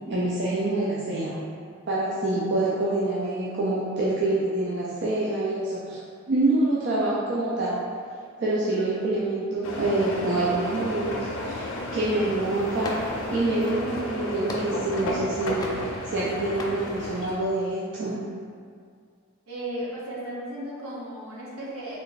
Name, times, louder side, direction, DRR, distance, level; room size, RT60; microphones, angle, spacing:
voice 1, 0.1-1.4 1.9-6.0 6.3-7.8 8.4-18.2, right 2 dB, 60° right, -7 dB, 0.5 m, -26 dB
sound 1, 9.6-17.4, left 1 dB, 75° left, 0.5 m, -33 dB
sound 2, 12.8-13.3 13.7-15.2 15.6-16.3 16.6-16.8, left 2 dB, 20° left, 0.3 m, -37 dB
voice 2, 19.5-22.0, right 1 dB, 90° right, -6 dB, 0.8 m, -35 dB
3.2 x 2.5 x 3.9 m, 2.2 s
head